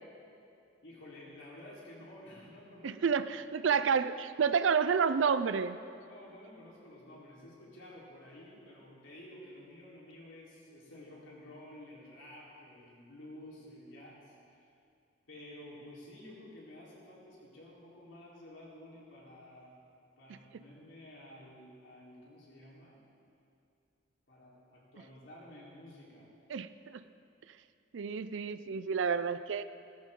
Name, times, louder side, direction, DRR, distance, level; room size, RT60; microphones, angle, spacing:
voice 1, 0.8-3.2 3.6-3.8 6.0-14.7 15.3-19.8 20.2-23.0 24.3-26.3, left 1 dB, 85° left, -6 dB, 3.9 m, -52 dB
voice 2, 2.8-5.8 20.3-20.4 26.5-27.0 27.9-29.6, right 6 dB, 80° right, 12 dB, 0.4 m, -30 dB
16.5 x 14.5 x 3.8 m, 2.5 s
head